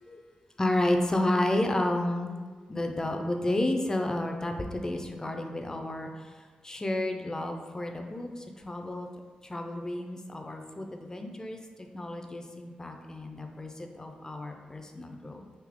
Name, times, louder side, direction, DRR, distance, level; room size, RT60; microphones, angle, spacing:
voice 1, 0.6-2.4 2.7-6.1 6.6-9.1 9.5-11.6 11.9-15.4, left 1 dB, 20° left, 4 dB, 0.4 m, -31 dB
3.4 x 2.7 x 3.6 m, 1.4 s
cardioid pair, 95°, 3 cm